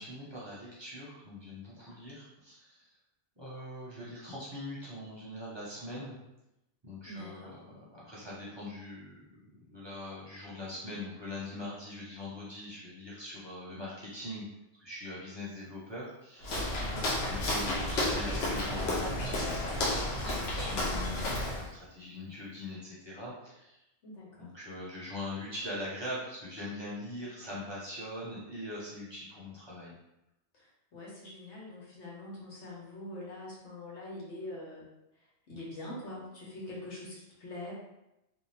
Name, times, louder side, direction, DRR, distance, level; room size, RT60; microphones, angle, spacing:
voice 1, 0.0-2.9 3.4-6.2 6.8-14.5 14.8-16.9 17.3-21.4 21.7-23.8 24.4-30.0, left 1 dB, 25° right, -7 dB, 0.7 m, -42 dB
voice 2, 7.1-7.5 16.8-17.1 24.0-24.5 30.5-34.9 35.5-37.7, left 1 dB, 90° left, -5 dB, 1.3 m, -44 dB
Walk footsteps, 16.4-21.7, left 1 dB, 70° left, 0.9 m, -32 dB
2.7 x 2.4 x 3.2 m, 0.89 s
omnidirectional pair, 1.1 m